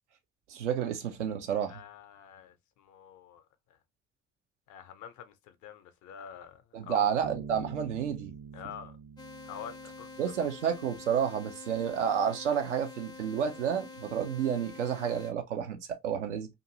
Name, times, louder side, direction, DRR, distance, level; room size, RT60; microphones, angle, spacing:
voice 1, 0.5-1.8 6.7-8.3 10.2-16.5, right 8 dB, 80° right, 0.6 m, -30 dB
voice 2, 1.7-3.5 4.7-7.1 8.5-9.0 9.5-10.5, left 8 dB, 55° left, 0.6 m, -47 dB
Bass guitar, 7.2-10.7, right 6 dB, 35° right, 0.6 m, -45 dB
sound 1, 9.2-15.3, left 3 dB, 10° left, 0.5 m, -47 dB
2.5 x 2.5 x 2.8 m
figure-of-eight pair, 45°, 36 cm